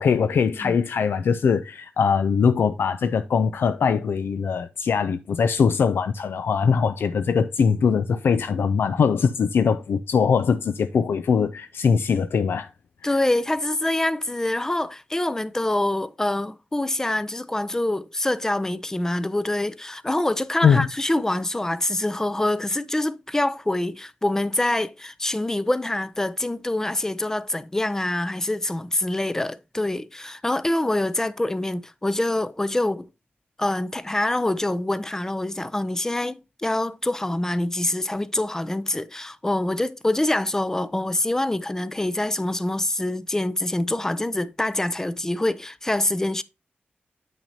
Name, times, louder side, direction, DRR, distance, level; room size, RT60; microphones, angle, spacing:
voice 1, 0.0-12.7 13.0-13.1 20.6-20.9, left 6 dB, 85° left, 0.4 m, -21 dB
voice 2, 13.0-33.1 33.6-46.4, left 1 dB, 15° left, 0.5 m, -25 dB
8.8 x 6.0 x 2.7 m
wide cardioid pair, 110°, 4 cm